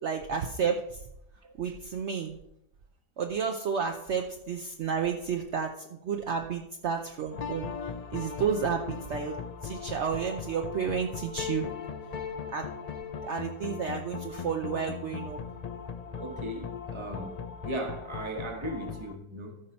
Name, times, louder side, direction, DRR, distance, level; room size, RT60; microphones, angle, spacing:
voice 1, 0.0-1.0 1.6-2.4 3.2-5.7 6.0-7.7 8.1-9.3 9.6-11.7 12.5-12.7 13.2-15.4, right 6 dB, 60° right, 0.9 m, -31 dB
voice 2, 1.4-1.7 16.1-17.4 17.6-19.6, right 1 dB, 20° right, 1.1 m, -37 dB
sound 1, 7.3-19.2, left 6 dB, 80° left, 0.3 m, -38 dB
14.0 x 5.5 x 4.3 m
omnidirectional pair, 1.5 m